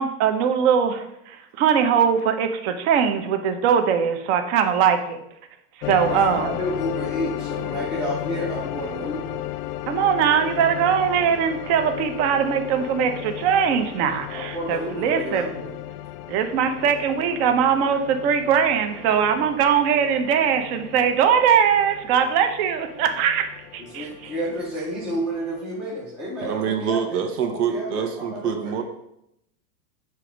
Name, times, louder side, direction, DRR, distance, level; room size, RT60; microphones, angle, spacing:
voice 1, 0.0-5.2 5.8-6.5 9.9-15.5 16.3-23.4 23.7-24.1, right 7 dB, 45° right, 6 dB, 0.7 m, -21 dB
sound 1, 5.8-25.6, left 13 dB, 75° left, 0.6 m, -35 dB
voice 2, 6.0-9.4 14.3-15.7 16.6-16.8 23.8-28.8, equal, ahead, -5 dB, 0.4 m, -31 dB
voice 3, 26.4-28.8, right 7 dB, 75° right, 6 dB, 1.3 m, -26 dB
6.8 x 3.4 x 5.0 m, 0.79 s
supercardioid pair, 155°, 47 cm